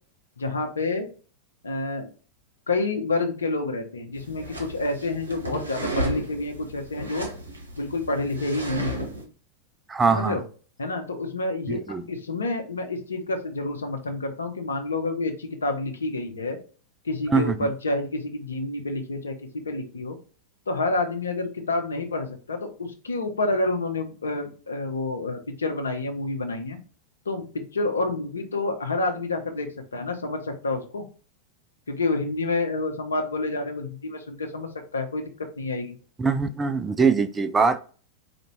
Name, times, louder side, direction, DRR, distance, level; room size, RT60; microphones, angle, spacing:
voice 1, 0.4-1.1 1.6-2.1 2.7-7.3 7.8-9.0 10.1-10.4 10.8-11.8 12.1-16.6 17.0-19.4 19.6-20.2 20.7-26.8 27.3-31.0 31.9-35.3 35.6-36.0, left 2 dB, 70° left, 0.8 m, -28 dB
sound 1, 4.2-9.2, right 2 dB, 75° right, 1.0 m, -34 dB
voice 2, 9.9-10.4 11.7-12.0 17.3-17.7 36.2-37.8, right 5 dB, 15° right, 0.4 m, -22 dB
4.3 x 2.7 x 4.5 m
figure-of-eight pair, 90°, 0 cm